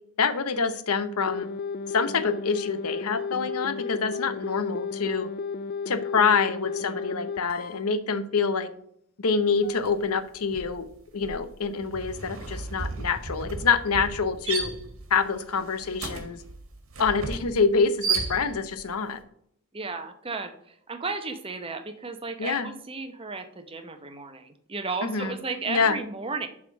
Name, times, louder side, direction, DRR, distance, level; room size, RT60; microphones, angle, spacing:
voice 1, 0.2-1.5 1.9-5.3 5.9-8.7 9.2-10.9 11.1-14.7 15.1-16.4 17.0-19.2 22.4-22.7 25.0-25.4 25.7-26.0, left 5 dB, 80° left, 11 dB, 0.8 m, -26 dB
sound 1, 1.2-7.8 9.6-9.8, left 5 dB, 45° left, 0.4 m, -33 dB
sound 2, 9.8-10.1 10.4-18.8, right 4 dB, 65° right, 1.5 m, -34 dB
voice 2, 19.7-26.5, right 4 dB, 25° right, 8 dB, 0.8 m, -34 dB
7.5 x 3.6 x 6.2 m, 0.67 s
head